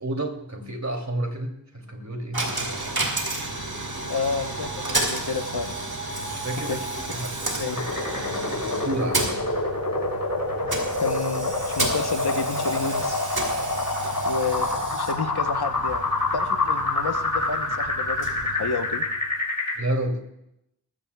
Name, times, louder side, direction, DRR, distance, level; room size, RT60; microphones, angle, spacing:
voice 1, 0.0-2.7 6.2-9.5 19.7-20.2, right 1 dB, 45° right, 4 dB, 3.1 m, -31 dB
Coin (dropping), 2.3-19.3, right 2 dB, 70° right, 2.9 m, -32 dB
voice 2, 4.1-5.7 6.6-6.8 7.6-7.8 11.0-13.2 14.2-19.0, left 4 dB, 85° left, 7 dB, 1.2 m, -30 dB
sound 1, 7.8-19.8, left 2 dB, 60° left, 6.1 m, -27 dB
20.0 x 15.5 x 2.4 m, 0.79 s
wide cardioid pair, 45°, 38 cm